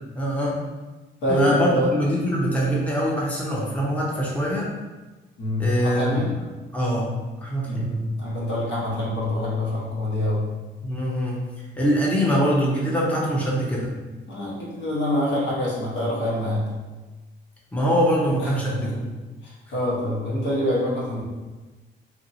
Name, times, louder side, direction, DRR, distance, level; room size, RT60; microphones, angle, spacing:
voice 1, 0.1-0.6 1.3-4.7 5.6-6.3 6.7-7.1 7.4-7.9 10.8-11.5 11.8-13.9 17.7-19.1, equal, 5° left, -5 dB, 0.7 m, -23 dB
voice 2, 1.2-1.9 5.4-6.3 7.7-10.5 14.3-16.7 18.4-18.9 19.4-21.2, left 1 dB, 70° left, -6 dB, 1.2 m, -26 dB
2.8 x 2.8 x 2.7 m, 1.2 s
cardioid pair, 90°, 20 cm